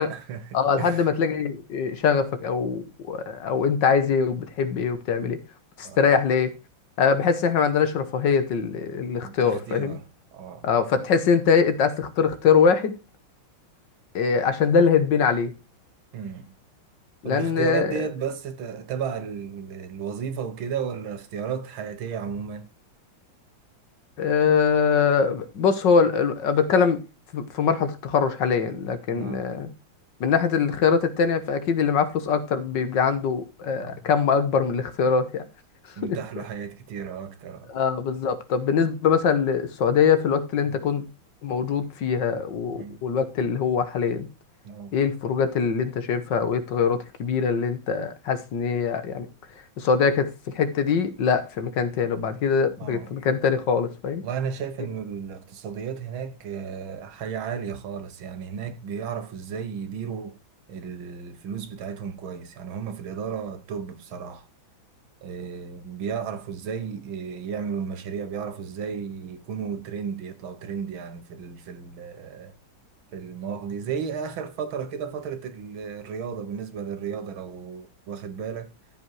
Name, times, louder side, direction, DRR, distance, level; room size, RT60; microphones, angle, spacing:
voice 1, 0.0-1.1 5.8-6.1 9.2-10.1 10.3-10.7 16.1-16.5 17.2-22.7 29.1-29.5 33.8-34.1 36.0-37.7 40.6-40.8 42.7-43.0 44.6-44.9 52.8-53.1 54.2-60.4 60.7-64.5 65.2-72.5 73.1-78.7, right 7 dB, 85° right, 2.0 m, -34 dB
voice 2, 0.5-5.4 5.8-6.5 7.0-10.0 10.6-13.0 14.1-15.5 17.2-18.0 24.2-27.0 27.3-29.7 30.2-35.4 36.0-36.2 37.7-41.0 41.4-44.3 44.9-49.3 49.8-54.2, left 6 dB, 65° left, 1.8 m, -23 dB
14.0 x 5.4 x 4.7 m
omnidirectional pair, 2.2 m